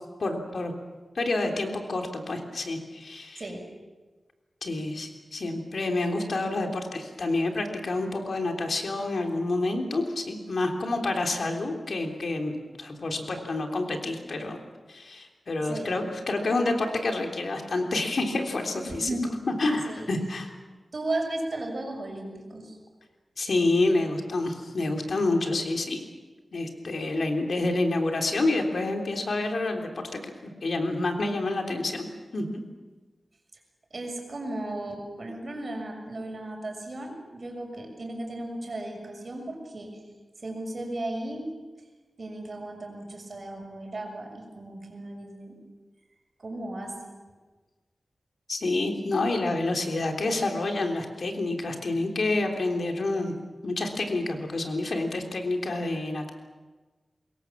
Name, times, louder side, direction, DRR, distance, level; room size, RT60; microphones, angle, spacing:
voice 1, 0.2-0.7 1.1-3.4 4.6-14.6 14.9-19.1 19.5-20.5 23.4-26.0 26.5-32.1 32.3-32.6 48.5-53.3 53.6-56.3, left 2 dB, 65° left, 3 dB, 3.5 m, -28 dB
voice 2, 15.6-15.9 18.9-19.4 19.9-20.1 20.9-22.8 33.9-40.0 40.4-41.5 42.2-45.5 46.4-46.9, right 1 dB, 45° right, 2 dB, 6.7 m, -35 dB
25.0 x 22.0 x 7.4 m, 1.3 s
wide cardioid pair, 110°, 0 cm